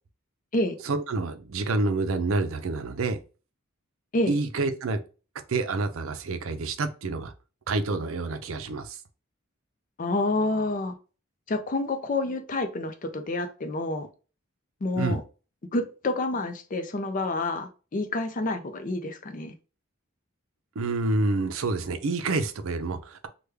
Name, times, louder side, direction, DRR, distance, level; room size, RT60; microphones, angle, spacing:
voice 1, 0.8-3.2 4.3-5.0 5.5-7.3 7.7-9.0 15.0-15.2 20.8-23.3, right 3 dB, 80° right, 0.5 m, -28 dB
voice 2, 10.0-11.0 11.5-14.1 14.8-15.2 15.7-19.5, left 2 dB, 40° left, 0.5 m, -28 dB
3.3 x 2.2 x 3.2 m
head